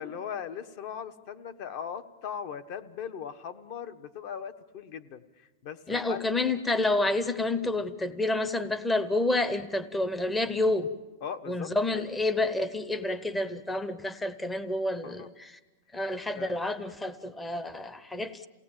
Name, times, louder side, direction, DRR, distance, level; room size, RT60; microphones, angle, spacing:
voice 1, 0.0-6.3 11.2-12.0 15.0-15.3 16.3-16.5, left 8 dB, 45° left, 11 dB, 1.2 m, -39 dB
voice 2, 5.9-10.9 11.5-15.5 15.9-18.5, left 2 dB, 10° left, 13 dB, 0.7 m, -29 dB
28.0 x 18.0 x 8.9 m, 1.3 s
supercardioid pair, 160°, 0 cm